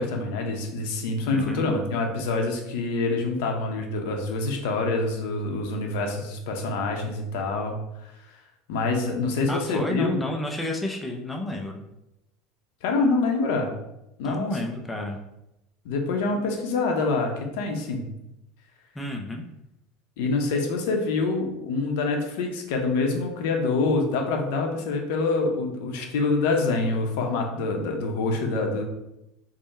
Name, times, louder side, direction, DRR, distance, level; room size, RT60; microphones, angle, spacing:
voice 1, 0.0-7.8 8.7-10.2 12.8-13.7 14.2-14.5 15.8-18.0 20.2-28.8, left 3 dB, 70° left, 2 dB, 0.7 m, -26 dB
voice 2, 1.3-1.7 9.5-11.8 14.2-15.2 19.0-19.5, left 1 dB, 5° left, 1 dB, 0.3 m, -31 dB
3.6 x 2.1 x 4.0 m, 0.87 s
supercardioid pair, 160°, 0 cm